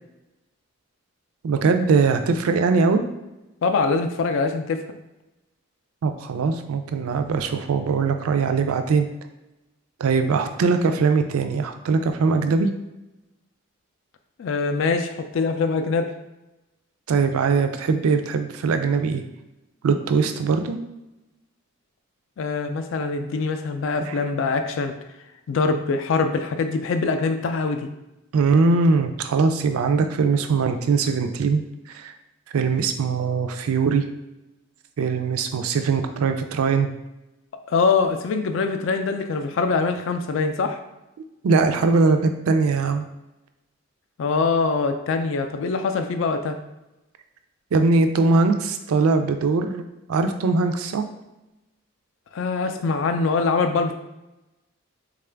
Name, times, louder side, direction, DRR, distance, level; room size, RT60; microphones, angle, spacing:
voice 1, 1.4-3.0 6.0-9.1 10.0-12.7 17.1-19.2 19.8-20.8 24.1-24.2 28.3-31.6 31.9-32.1 32.5-34.1 35.0-36.9 41.4-43.1 47.7-49.8 50.1-51.0, right 4 dB, 80° right, 7 dB, 0.4 m, -21 dB
voice 2, 3.6-5.0 14.4-16.1 22.4-24.9 25.5-27.9 37.7-40.8 44.2-46.6 52.3-53.9, left 4 dB, 60° left, 7 dB, 0.3 m, -23 dB
3.7 x 2.4 x 3.3 m, 0.96 s
head